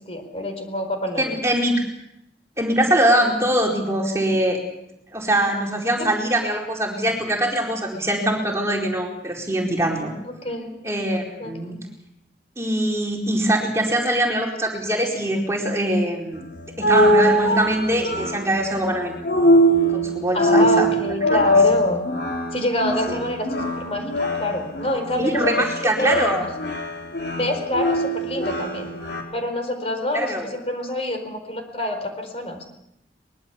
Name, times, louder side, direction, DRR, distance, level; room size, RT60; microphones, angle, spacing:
voice 1, 0.1-1.4 10.2-10.8 11.4-11.5 20.3-22.0 22.5-25.4 25.8-26.4 27.3-28.9 29.3-32.6, left 1 dB, 35° left, 5 dB, 4.5 m, -26 dB
voice 2, 1.2-1.7 2.6-4.6 5.1-10.1 10.8-11.8 12.6-16.5 16.8-19.1 19.9-20.9 21.3-21.4 23.1-23.2 25.2-26.4 30.1-30.4, right 1 dB, 15° right, -1 dB, 4.5 m, -22 dB
sound 1, 16.3-29.2, equal, 80° left, 4.3 m, -22 dB
23.5 x 22.0 x 7.1 m, 0.83 s
head